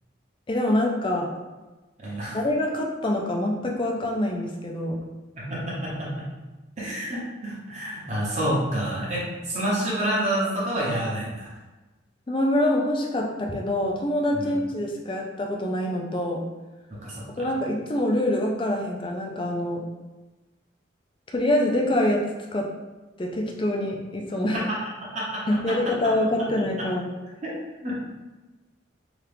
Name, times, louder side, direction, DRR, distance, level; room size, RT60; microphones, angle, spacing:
voice 1, 0.5-1.3 2.3-5.0 12.3-16.4 17.4-19.9 21.3-22.3 22.5-22.7 23.2-24.6 25.5-27.0, left 1 dB, 25° left, 0 dB, 0.4 m, -25 dB
voice 2, 2.0-2.4 5.4-6.3 6.8-11.5 14.3-14.6 17.0-17.5 25.0-25.2 27.4-27.5 27.8-27.9, right 1 dB, 35° right, -7 dB, 0.9 m, -28 dB
2.9 x 2.4 x 3.3 m, 1.2 s
head